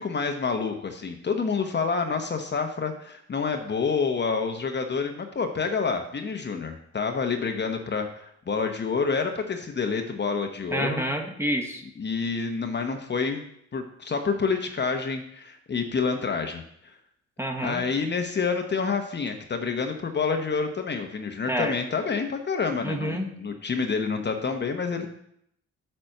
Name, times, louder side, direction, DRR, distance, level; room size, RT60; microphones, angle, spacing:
voice 1, 0.0-11.0 12.0-13.4 13.7-16.9 17.6-25.1, left 5 dB, 35° left, 5 dB, 1.0 m, -28 dB
voice 2, 10.7-11.8 17.4-17.8 21.5-21.7 22.8-23.2, right 1 dB, 10° right, 3 dB, 1.3 m, -28 dB
8.9 x 4.3 x 6.6 m, 0.71 s
cardioid pair, 90°, 30 cm